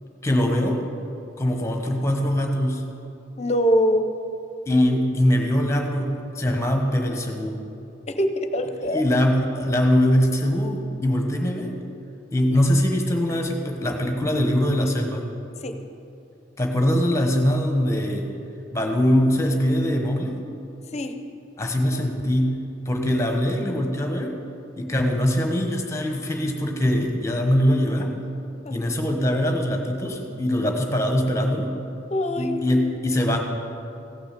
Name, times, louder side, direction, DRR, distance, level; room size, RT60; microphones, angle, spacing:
voice 1, 0.2-0.8 1.4-2.8 4.7-7.6 8.8-11.7 12.3-15.2 16.6-18.3 18.7-20.4 21.6-22.6 22.8-24.3 24.8-28.1 28.7-31.7 32.4-33.4, equal, 15° left, 3 dB, 1.2 m, -22 dB
voice 2, 3.4-4.0 8.1-9.0 15.6-15.8 20.9-21.1 21.9-22.0 28.6-28.9 32.1-32.6, equal, 35° left, 7 dB, 0.7 m, -23 dB
16.0 x 6.0 x 6.8 m, 2.7 s
head